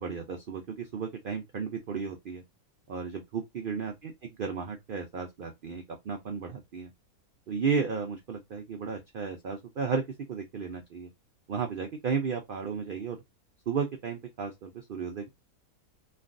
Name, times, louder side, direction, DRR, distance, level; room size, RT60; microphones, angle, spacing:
voice 1, 0.0-2.4 2.9-6.9 7.5-10.0 10.3-11.1 11.5-13.2 13.7-15.3, right 5 dB, 85° right, 0.4 m, -34 dB
3.3 x 2.3 x 2.5 m
omnidirectional pair, 1.5 m